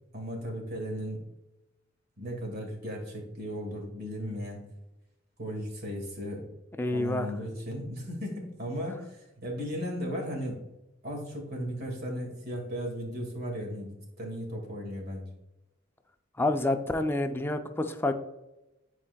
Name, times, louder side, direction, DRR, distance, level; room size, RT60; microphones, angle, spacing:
voice 1, 0.1-1.2 2.2-4.6 5.4-6.5 6.9-10.6 11.0-15.3, equal, 50° right, 1 dB, 2.0 m, -36 dB
voice 2, 6.8-7.3 16.4-18.1, left 2 dB, 10° left, 7 dB, 0.4 m, -28 dB
10.0 x 4.4 x 2.2 m, 0.95 s
head